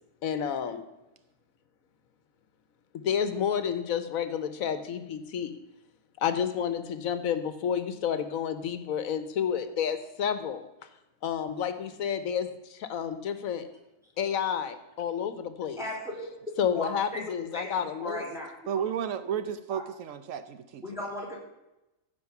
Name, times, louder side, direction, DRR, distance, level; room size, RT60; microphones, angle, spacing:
voice 1, 0.2-0.8 3.0-5.5 6.2-10.6 11.2-13.6 14.2-15.8 16.6-18.2, left 8 dB, 85° left, 11 dB, 1.3 m, -30 dB
voice 2, 15.8-16.3 16.7-17.2 17.5-17.7 18.0-18.5 19.7-19.8 20.8-21.4, left 1 dB, ahead, -3 dB, 3.1 m, -36 dB
voice 3, 18.7-21.1, right 8 dB, 75° right, 12 dB, 1.0 m, -33 dB
15.0 x 5.2 x 5.8 m, 0.95 s
omnidirectional pair, 1.4 m